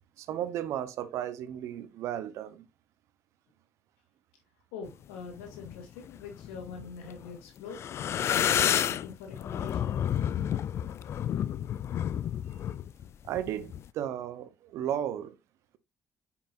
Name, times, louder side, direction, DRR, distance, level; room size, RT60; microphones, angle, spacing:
voice 1, 0.2-2.7 13.2-15.4, right 11 dB, 70° right, 0.8 m, -34 dB
voice 2, 4.7-7.8 8.3-10.0, left 5 dB, 85° left, 2.5 m, -44 dB
sound 1, 5.4-5.8 6.3-7.4 7.7-13.9, left 10 dB, 60° left, 0.4 m, -30 dB
8.7 x 5.7 x 2.5 m
hypercardioid pair, 50°, 5 cm